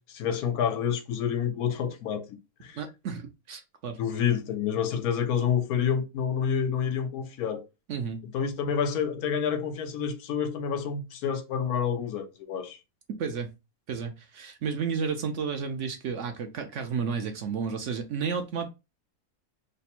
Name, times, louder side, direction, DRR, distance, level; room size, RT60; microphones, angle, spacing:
voice 1, 0.1-2.8 4.0-7.7 8.3-12.8, left 7 dB, 80° left, 1.2 m, -28 dB
voice 2, 2.7-4.0 7.9-8.2 13.2-13.5 13.9-18.7, right 6 dB, 65° right, 0.8 m, -32 dB
3.3 x 2.0 x 4.2 m
omnidirectional pair, 1.6 m